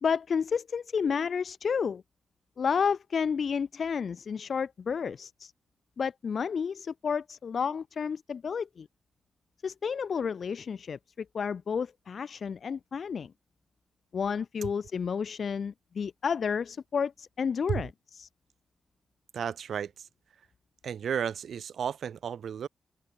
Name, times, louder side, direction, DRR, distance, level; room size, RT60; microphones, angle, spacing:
voice 1, 0.0-2.0 2.6-5.5 6.0-8.9 9.6-11.0 11.3-13.3 14.1-18.3, left 6 dB, 65° left, 0.7 m, -31 dB
voice 2, 19.3-20.1 20.8-22.7, right 8 dB, 75° right, 0.6 m, -33 dB
supercardioid pair, 45°, 0 cm